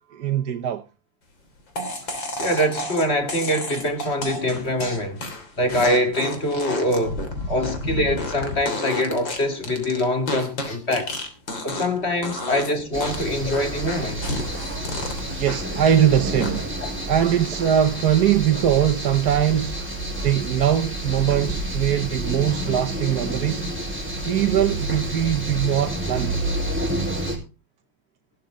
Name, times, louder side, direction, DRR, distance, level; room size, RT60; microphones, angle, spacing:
voice 1, 0.1-0.8 11.7-12.0 12.3-12.5 14.0-14.1 14.5-15.1 15.4-16.7 17.1-19.9 20.2-23.7 24.2-26.4, right 10 dB, 60° right, 1.4 m, -22 dB
many farts, 1.8-12.0 12.2-12.7 13.0-16.0 16.4-16.8, left 2 dB, 80° left, 3.9 m, -31 dB
voice 2, 2.0-5.2 5.6-7.2 7.5-11.1 11.5-14.3, left 1 dB, 35° left, 2.5 m, -24 dB
sound 1, 12.9-27.4, right 1 dB, 5° right, 4.0 m, -29 dB
15.5 x 12.5 x 3.7 m
omnidirectional pair, 2.0 m